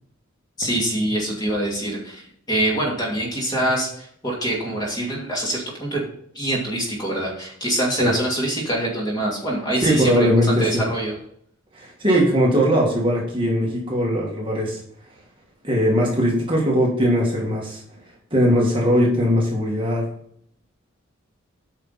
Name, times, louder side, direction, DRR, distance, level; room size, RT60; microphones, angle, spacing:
voice 1, 0.6-6.0 6.3-11.2, right 1 dB, 20° left, -3 dB, 2.5 m, -25 dB
voice 2, 9.8-10.8 11.7-14.8 15.6-17.8 18.3-20.1, equal, 25° right, -3 dB, 2.0 m, -20 dB
9.1 x 5.7 x 4.1 m, 0.66 s
head